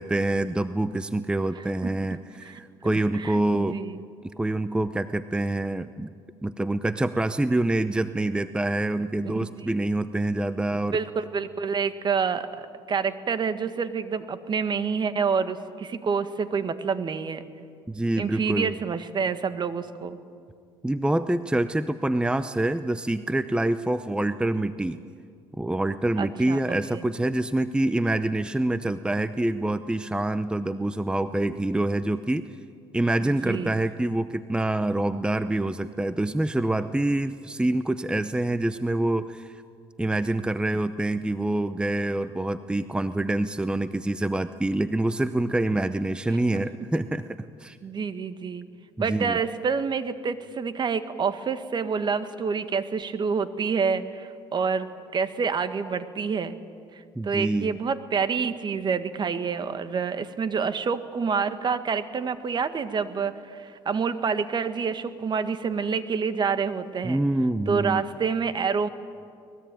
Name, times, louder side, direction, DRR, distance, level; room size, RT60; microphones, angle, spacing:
voice 1, 0.0-3.8 4.4-6.1 6.4-11.0 17.9-18.7 20.8-25.0 25.6-32.5 32.9-39.6 40.0-47.8 49.0-49.4 57.2-57.8 67.0-68.0, right 1 dB, 10° right, 12 dB, 0.7 m, -26 dB
voice 2, 1.6-1.9 2.4-2.6 3.1-4.0 9.2-9.3 9.6-9.8 10.9-17.4 18.2-20.2 26.2-26.6 26.9-27.0 33.2-33.8 47.8-48.6 49.0-56.5 56.9-67.2 67.7-68.9, right 5 dB, 40° right, 11 dB, 1.6 m, -28 dB
23.5 x 20.0 x 9.1 m, 2.3 s
supercardioid pair, 75°, 12 cm